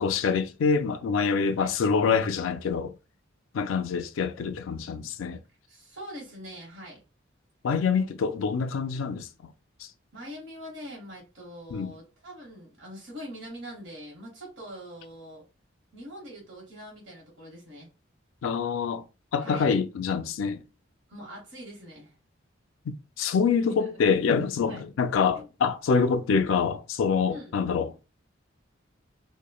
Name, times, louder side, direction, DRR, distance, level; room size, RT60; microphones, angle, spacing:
voice 1, 0.0-2.9 3.5-5.4 7.6-9.5 11.7-11.9 18.4-19.0 19.3-20.6 22.9-27.9, left 5 dB, 80° left, 0.3 m, -26 dB
voice 2, 5.7-7.0 8.0-8.1 10.1-15.4 15.9-17.9 19.4-19.7 21.1-22.1 23.6-24.0 24.7-24.8 25.3-25.5 27.3-27.6, equal, 70° right, 1.2 m, -43 dB
3.0 x 2.2 x 2.3 m
head